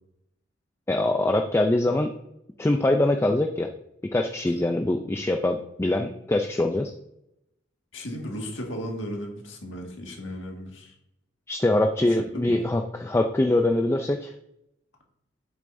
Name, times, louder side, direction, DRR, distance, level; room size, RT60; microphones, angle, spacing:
voice 1, 0.9-2.1 2.6-3.7 4.0-6.9 11.5-14.3, left 1 dB, 15° left, 5 dB, 0.4 m, -23 dB
voice 2, 7.9-10.9 12.3-12.6, equal, 70° left, 1 dB, 1.8 m, -35 dB
8.6 x 7.0 x 2.6 m, 0.82 s
head